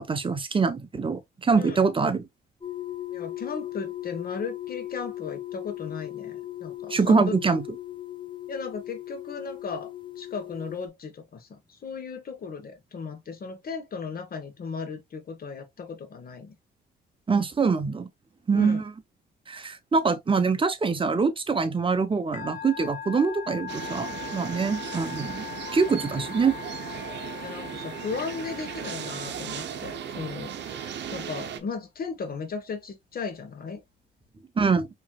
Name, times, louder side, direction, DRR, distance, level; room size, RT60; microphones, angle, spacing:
voice 1, 0.0-2.2 6.9-7.6 17.3-18.1 18.5-18.8 19.5-25.4 25.7-26.6 34.6-34.9, right 4 dB, 25° right, 0.8 m, -24 dB
sound 1, 2.6-10.9, left 14 dB, 25° left, 1.0 m, -38 dB
voice 2, 3.1-7.3 8.5-16.5 18.5-18.8 27.4-33.8, left 5 dB, 50° left, 1.3 m, -36 dB
Musical instrument, 22.3-30.0, left 9 dB, 70° left, 1.8 m, -40 dB
sound 2, 23.7-31.6, right 8 dB, 60° right, 0.8 m, -37 dB
4.6 x 3.1 x 2.3 m
cardioid pair, 90°, 20 cm